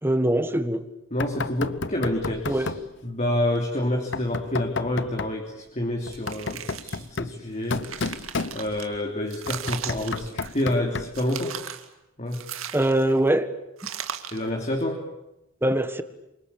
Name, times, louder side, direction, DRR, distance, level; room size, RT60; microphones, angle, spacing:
voice 1, 0.0-0.8 2.5-2.7 12.7-13.5 15.6-16.0, right 1 dB, 10° right, 1.6 m, -22 dB
voice 2, 1.1-2.7 3.0-5.4 5.7-8.2 8.5-11.6 12.2-12.4 14.3-15.0, left 1 dB, 35° left, 3.2 m, -28 dB
Knock, 1.2-2.9 4.1-5.4 6.1-9.0 9.5-11.3, left 4 dB, 60° left, 0.9 m, -32 dB
sound 1, 6.1-7.2 7.6-8.9 9.3-10.8 11.1-11.9 12.3-13.2 13.8-14.5, right 8 dB, 85° right, 2.2 m, -37 dB
28.0 x 24.5 x 8.7 m
head